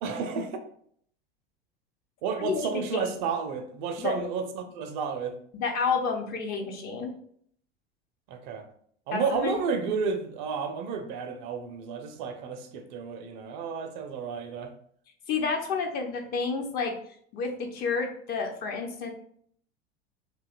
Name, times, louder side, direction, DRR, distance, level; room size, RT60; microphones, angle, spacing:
voice 1, 0.0-0.6 2.2-5.3 8.3-8.7 9.1-14.7, right 5 dB, 50° right, 7 dB, 0.4 m, -31 dB
voice 2, 2.4-3.2 4.0-4.1 5.5-7.1 9.1-9.6 15.3-16.9 17.3-19.1, left 4 dB, 30° left, 3 dB, 0.4 m, -30 dB
2.7 x 2.2 x 2.3 m, 0.62 s
figure-of-eight pair, 75°, 31 cm